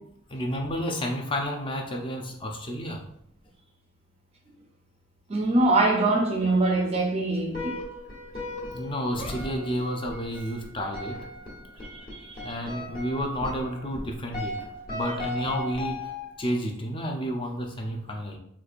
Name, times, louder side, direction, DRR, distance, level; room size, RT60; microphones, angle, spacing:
voice 1, 0.3-3.0 8.7-11.3 12.4-16.1 16.4-18.4, equal, 25° left, 0.5 m, -31 dB
voice 2, 5.3-7.8 11.9-12.5, right 2 dB, 30° right, 0.4 m, -24 dB
sound 1, 7.5-16.5, left 1 dB, 45° left, 1.0 m, -37 dB
4.4 x 2.4 x 2.5 m
head